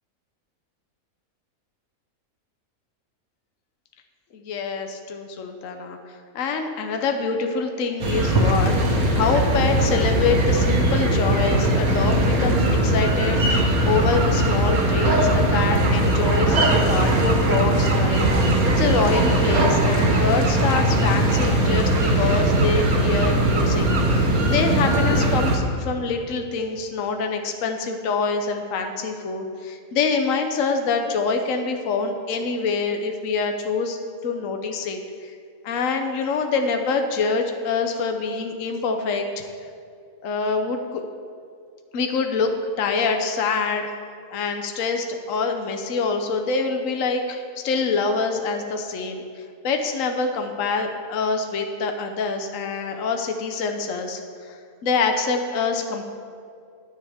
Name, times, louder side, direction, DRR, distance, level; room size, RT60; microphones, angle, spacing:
voice 1, 4.3-6.0 6.3-8.7 9.1-18.2 18.8-34.0 34.2-35.4 35.6-39.4 40.2-41.0 41.9-42.5 42.8-43.9 44.3-54.2 54.5-54.6 54.8-56.0, left 4 dB, 65° left, 5 dB, 1.2 m, -25 dB
sound 1, 8.0-25.6, right 1 dB, 80° right, 1.9 m, -20 dB
16.0 x 10.0 x 3.5 m, 2.3 s
omnidirectional pair, 1.5 m